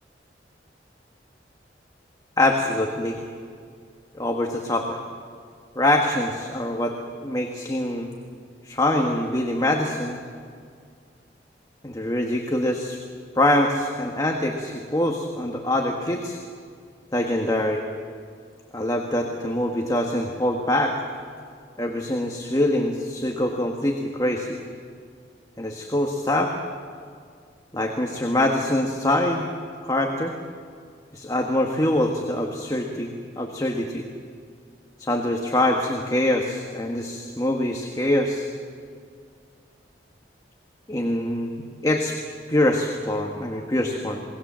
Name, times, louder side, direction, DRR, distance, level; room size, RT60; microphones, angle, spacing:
voice 1, 2.4-3.2 4.2-5.0 5.8-8.1 8.6-10.2 11.8-13.0 13.4-16.4 17.1-17.8 18.7-20.9 21.8-24.6 25.6-26.5 27.7-29.5 29.8-30.4 31.1-34.0 35.0-38.5 40.9-42.2 42.5-44.2, left 1 dB, 20° left, 1 dB, 1.7 m, -24 dB
28.5 x 20.0 x 7.6 m, 2.2 s
head